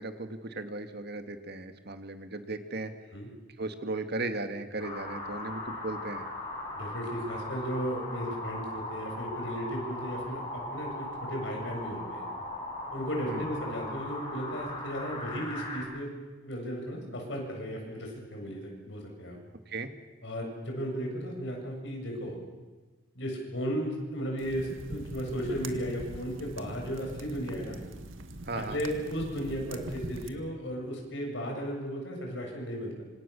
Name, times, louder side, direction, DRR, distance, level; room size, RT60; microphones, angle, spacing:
voice 1, 0.0-2.9 3.6-6.3 13.3-13.4 19.7-19.9 28.4-28.8, right 2 dB, 55° right, 8 dB, 2.0 m, -36 dB
sound 1, 4.8-15.8, left 1 dB, 25° left, 7.9 m, -38 dB
voice 2, 6.7-12.3 12.9-16.1 16.4-19.4 20.2-22.4 23.2-27.8 28.5-33.0, equal, 65° left, 1 dB, 7.5 m, -35 dB
sound 2, 24.4-30.3, right 2 dB, 80° right, 1.9 m, -43 dB
26.5 x 26.0 x 7.0 m, 1.3 s
head